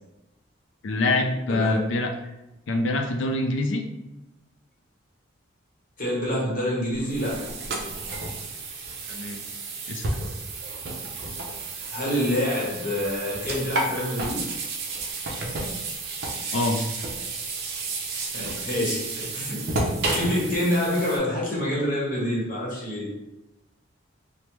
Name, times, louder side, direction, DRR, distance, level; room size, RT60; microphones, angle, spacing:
voice 1, 0.8-2.1 2.7-3.8 9.1-9.4 9.9-10.1 16.5-16.8, left 2 dB, 65° left, 4 dB, 0.4 m, -25 dB
voice 2, 6.0-7.5 11.9-14.4 18.3-19.6 20.1-23.1, left 1 dB, 40° left, -5 dB, 1.0 m, -27 dB
sound 1, 6.9-21.2, right 3 dB, 50° right, 0.5 m, -31 dB
3.2 x 2.1 x 3.0 m, 0.96 s
head